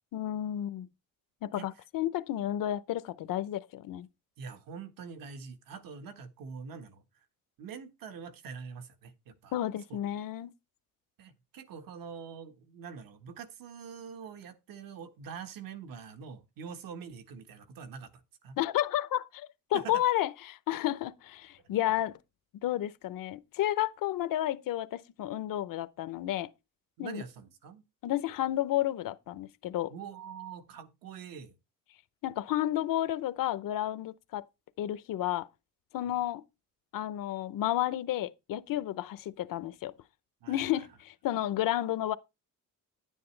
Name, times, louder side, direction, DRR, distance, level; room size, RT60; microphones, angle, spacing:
voice 1, 0.1-0.9 1.4-4.1 9.5-10.5 18.6-22.1 22.6-26.5 27.0-27.2 28.0-29.9 32.2-34.4 34.8-35.5 35.9-36.4 36.9-39.9 40.5-42.2, left 13 dB, 70° left, 0.8 m, -31 dB
voice 2, 4.4-7.0 7.6-9.5 9.9-10.0 11.2-18.6 19.7-20.0 27.0-27.8 29.9-31.5 36.1-36.2 40.4-40.8, right 6 dB, 75° right, 1.6 m, -45 dB
10.5 x 9.3 x 3.3 m
cardioid pair, 155°, 34 cm